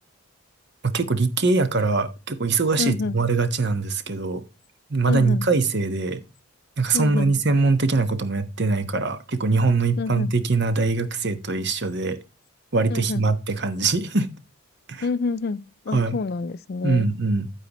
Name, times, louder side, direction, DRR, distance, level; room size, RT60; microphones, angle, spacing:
voice 1, 0.8-4.4 4.9-6.2 6.8-12.2 12.7-14.3 14.9-15.1 15.9-16.2 16.8-17.5, right 3 dB, 55° right, 1.2 m, -22 dB
voice 2, 2.8-3.2 5.1-5.5 6.9-7.3 10.0-10.3 12.9-13.3 15.0-17.1, left 4 dB, 50° left, 0.4 m, -28 dB
9.1 x 8.4 x 3.1 m
head